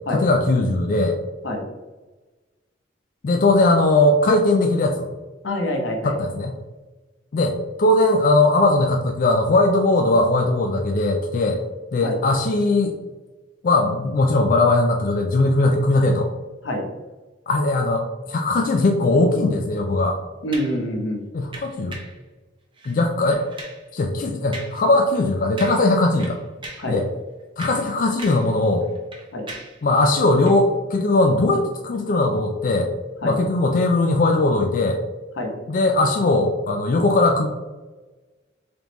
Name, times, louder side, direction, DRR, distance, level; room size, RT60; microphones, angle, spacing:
voice 1, 0.1-1.2 3.2-5.1 6.0-6.6 7.3-11.6 11.9-12.9 13.6-16.3 17.5-20.2 21.3-22.0 22.9-23.4 23.9-26.4 26.9-27.1 27.6-28.9 29.8-32.9 33.2-35.0 35.7-37.5, left 2 dB, 45° left, 3 dB, 0.4 m, -19 dB
voice 2, 5.4-6.2 12.0-12.1 16.6-16.8 20.4-21.2 26.8-27.0 29.3-29.4 33.2-33.4 35.4-35.5, left 1 dB, 80° left, 2 dB, 0.8 m, -25 dB
sound 1, 20.5-20.8 21.5-22.2 22.8-23.0 23.3-23.9 24.5-24.8 25.1-25.3 25.6-25.9 26.2-26.9 27.4-28.5 28.8-29.8 30.4-30.6, right 2 dB, 25° right, 0.7 m, -39 dB
3.8 x 3.5 x 3.0 m, 1.2 s
head